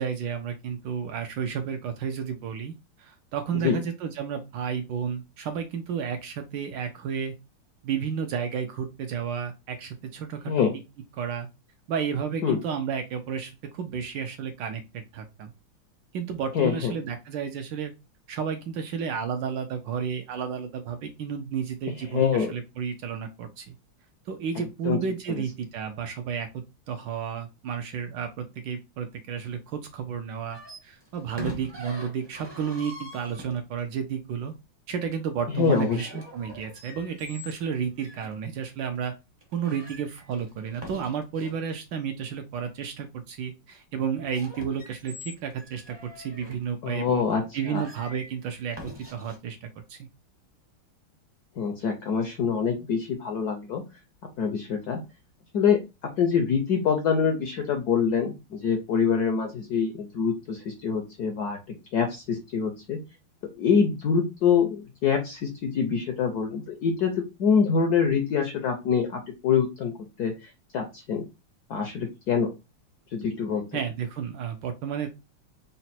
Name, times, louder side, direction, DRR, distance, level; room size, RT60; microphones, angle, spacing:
voice 1, 0.0-7.3 7.8-10.5 11.2-11.5 11.9-15.5 16.1-17.9 18.3-23.7 24.3-26.5 26.9-34.5 34.9-39.1 39.5-47.2 47.5-50.0 73.7-75.1, right 7 dB, 75° right, 6 dB, 1.1 m, -32 dB
voice 2, 16.5-16.9 22.1-22.5 24.8-25.0 35.5-36.1 46.8-47.8 51.6-53.8 54.4-55.0 55.5-55.8 56.2-63.0 63.6-67.1 67.4-69.9 70.2-71.2 71.7-72.5 73.1-73.6, left 6 dB, 70° left, 4 dB, 0.9 m, -25 dB
sound 1, 30.5-33.9 35.4-38.3 38.9-39.1 39.4-41.7 44.1-46.6 47.3-47.4 47.7-49.4, left 1 dB, 30° right, 0.4 m, -44 dB
4.1 x 2.1 x 4.1 m, 0.25 s
omnidirectional pair, 2.3 m